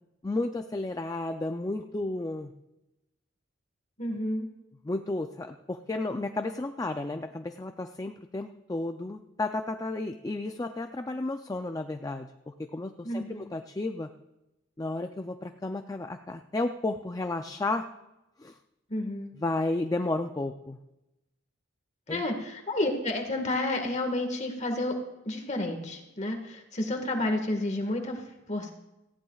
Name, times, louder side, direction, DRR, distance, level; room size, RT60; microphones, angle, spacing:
voice 1, 0.2-2.5 4.9-14.1 14.8-17.9 18.4-18.6 19.4-20.8 22.1-22.2, left 2 dB, 20° left, 6 dB, 0.4 m, -32 dB
voice 2, 4.0-4.5 13.0-13.5 18.9-19.3 22.1-25.0 25.2-28.7, left 1 dB, 35° left, 4 dB, 1.7 m, -31 dB
18.0 x 15.0 x 2.4 m, 0.95 s
head